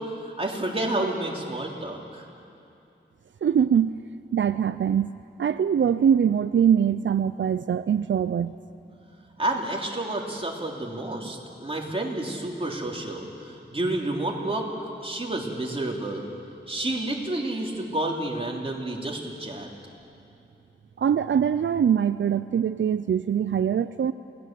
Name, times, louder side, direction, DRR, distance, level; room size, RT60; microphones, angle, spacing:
voice 1, 0.0-2.3 9.4-14.7 15.0-16.3 16.7-19.7, right 1 dB, 30° right, -1 dB, 3.4 m, -30 dB
voice 2, 3.4-4.0 4.3-5.1 5.4-8.5 21.0-24.1, right 8 dB, 80° right, 13 dB, 0.4 m, -23 dB
28.5 x 19.0 x 7.7 m, 2.7 s
wide cardioid pair, 95°, 19 cm